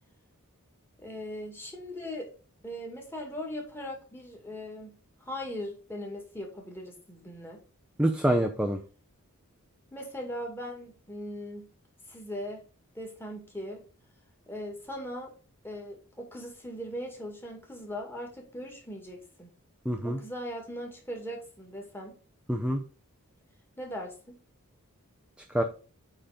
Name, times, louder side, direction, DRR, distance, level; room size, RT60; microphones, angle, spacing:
voice 1, 1.0-2.3 2.6-7.6 9.9-11.7 12.1-12.6 12.9-13.8 14.5-15.3 15.6-19.5 20.0-22.1 23.8-24.4, equal, 10° left, 1 dB, 2.2 m, -39 dB
voice 2, 8.0-8.8 19.9-20.2 22.5-22.8 25.5-25.6, right 1 dB, 5° right, 3 dB, 0.6 m, -26 dB
8.7 x 3.8 x 5.1 m, 0.37 s
head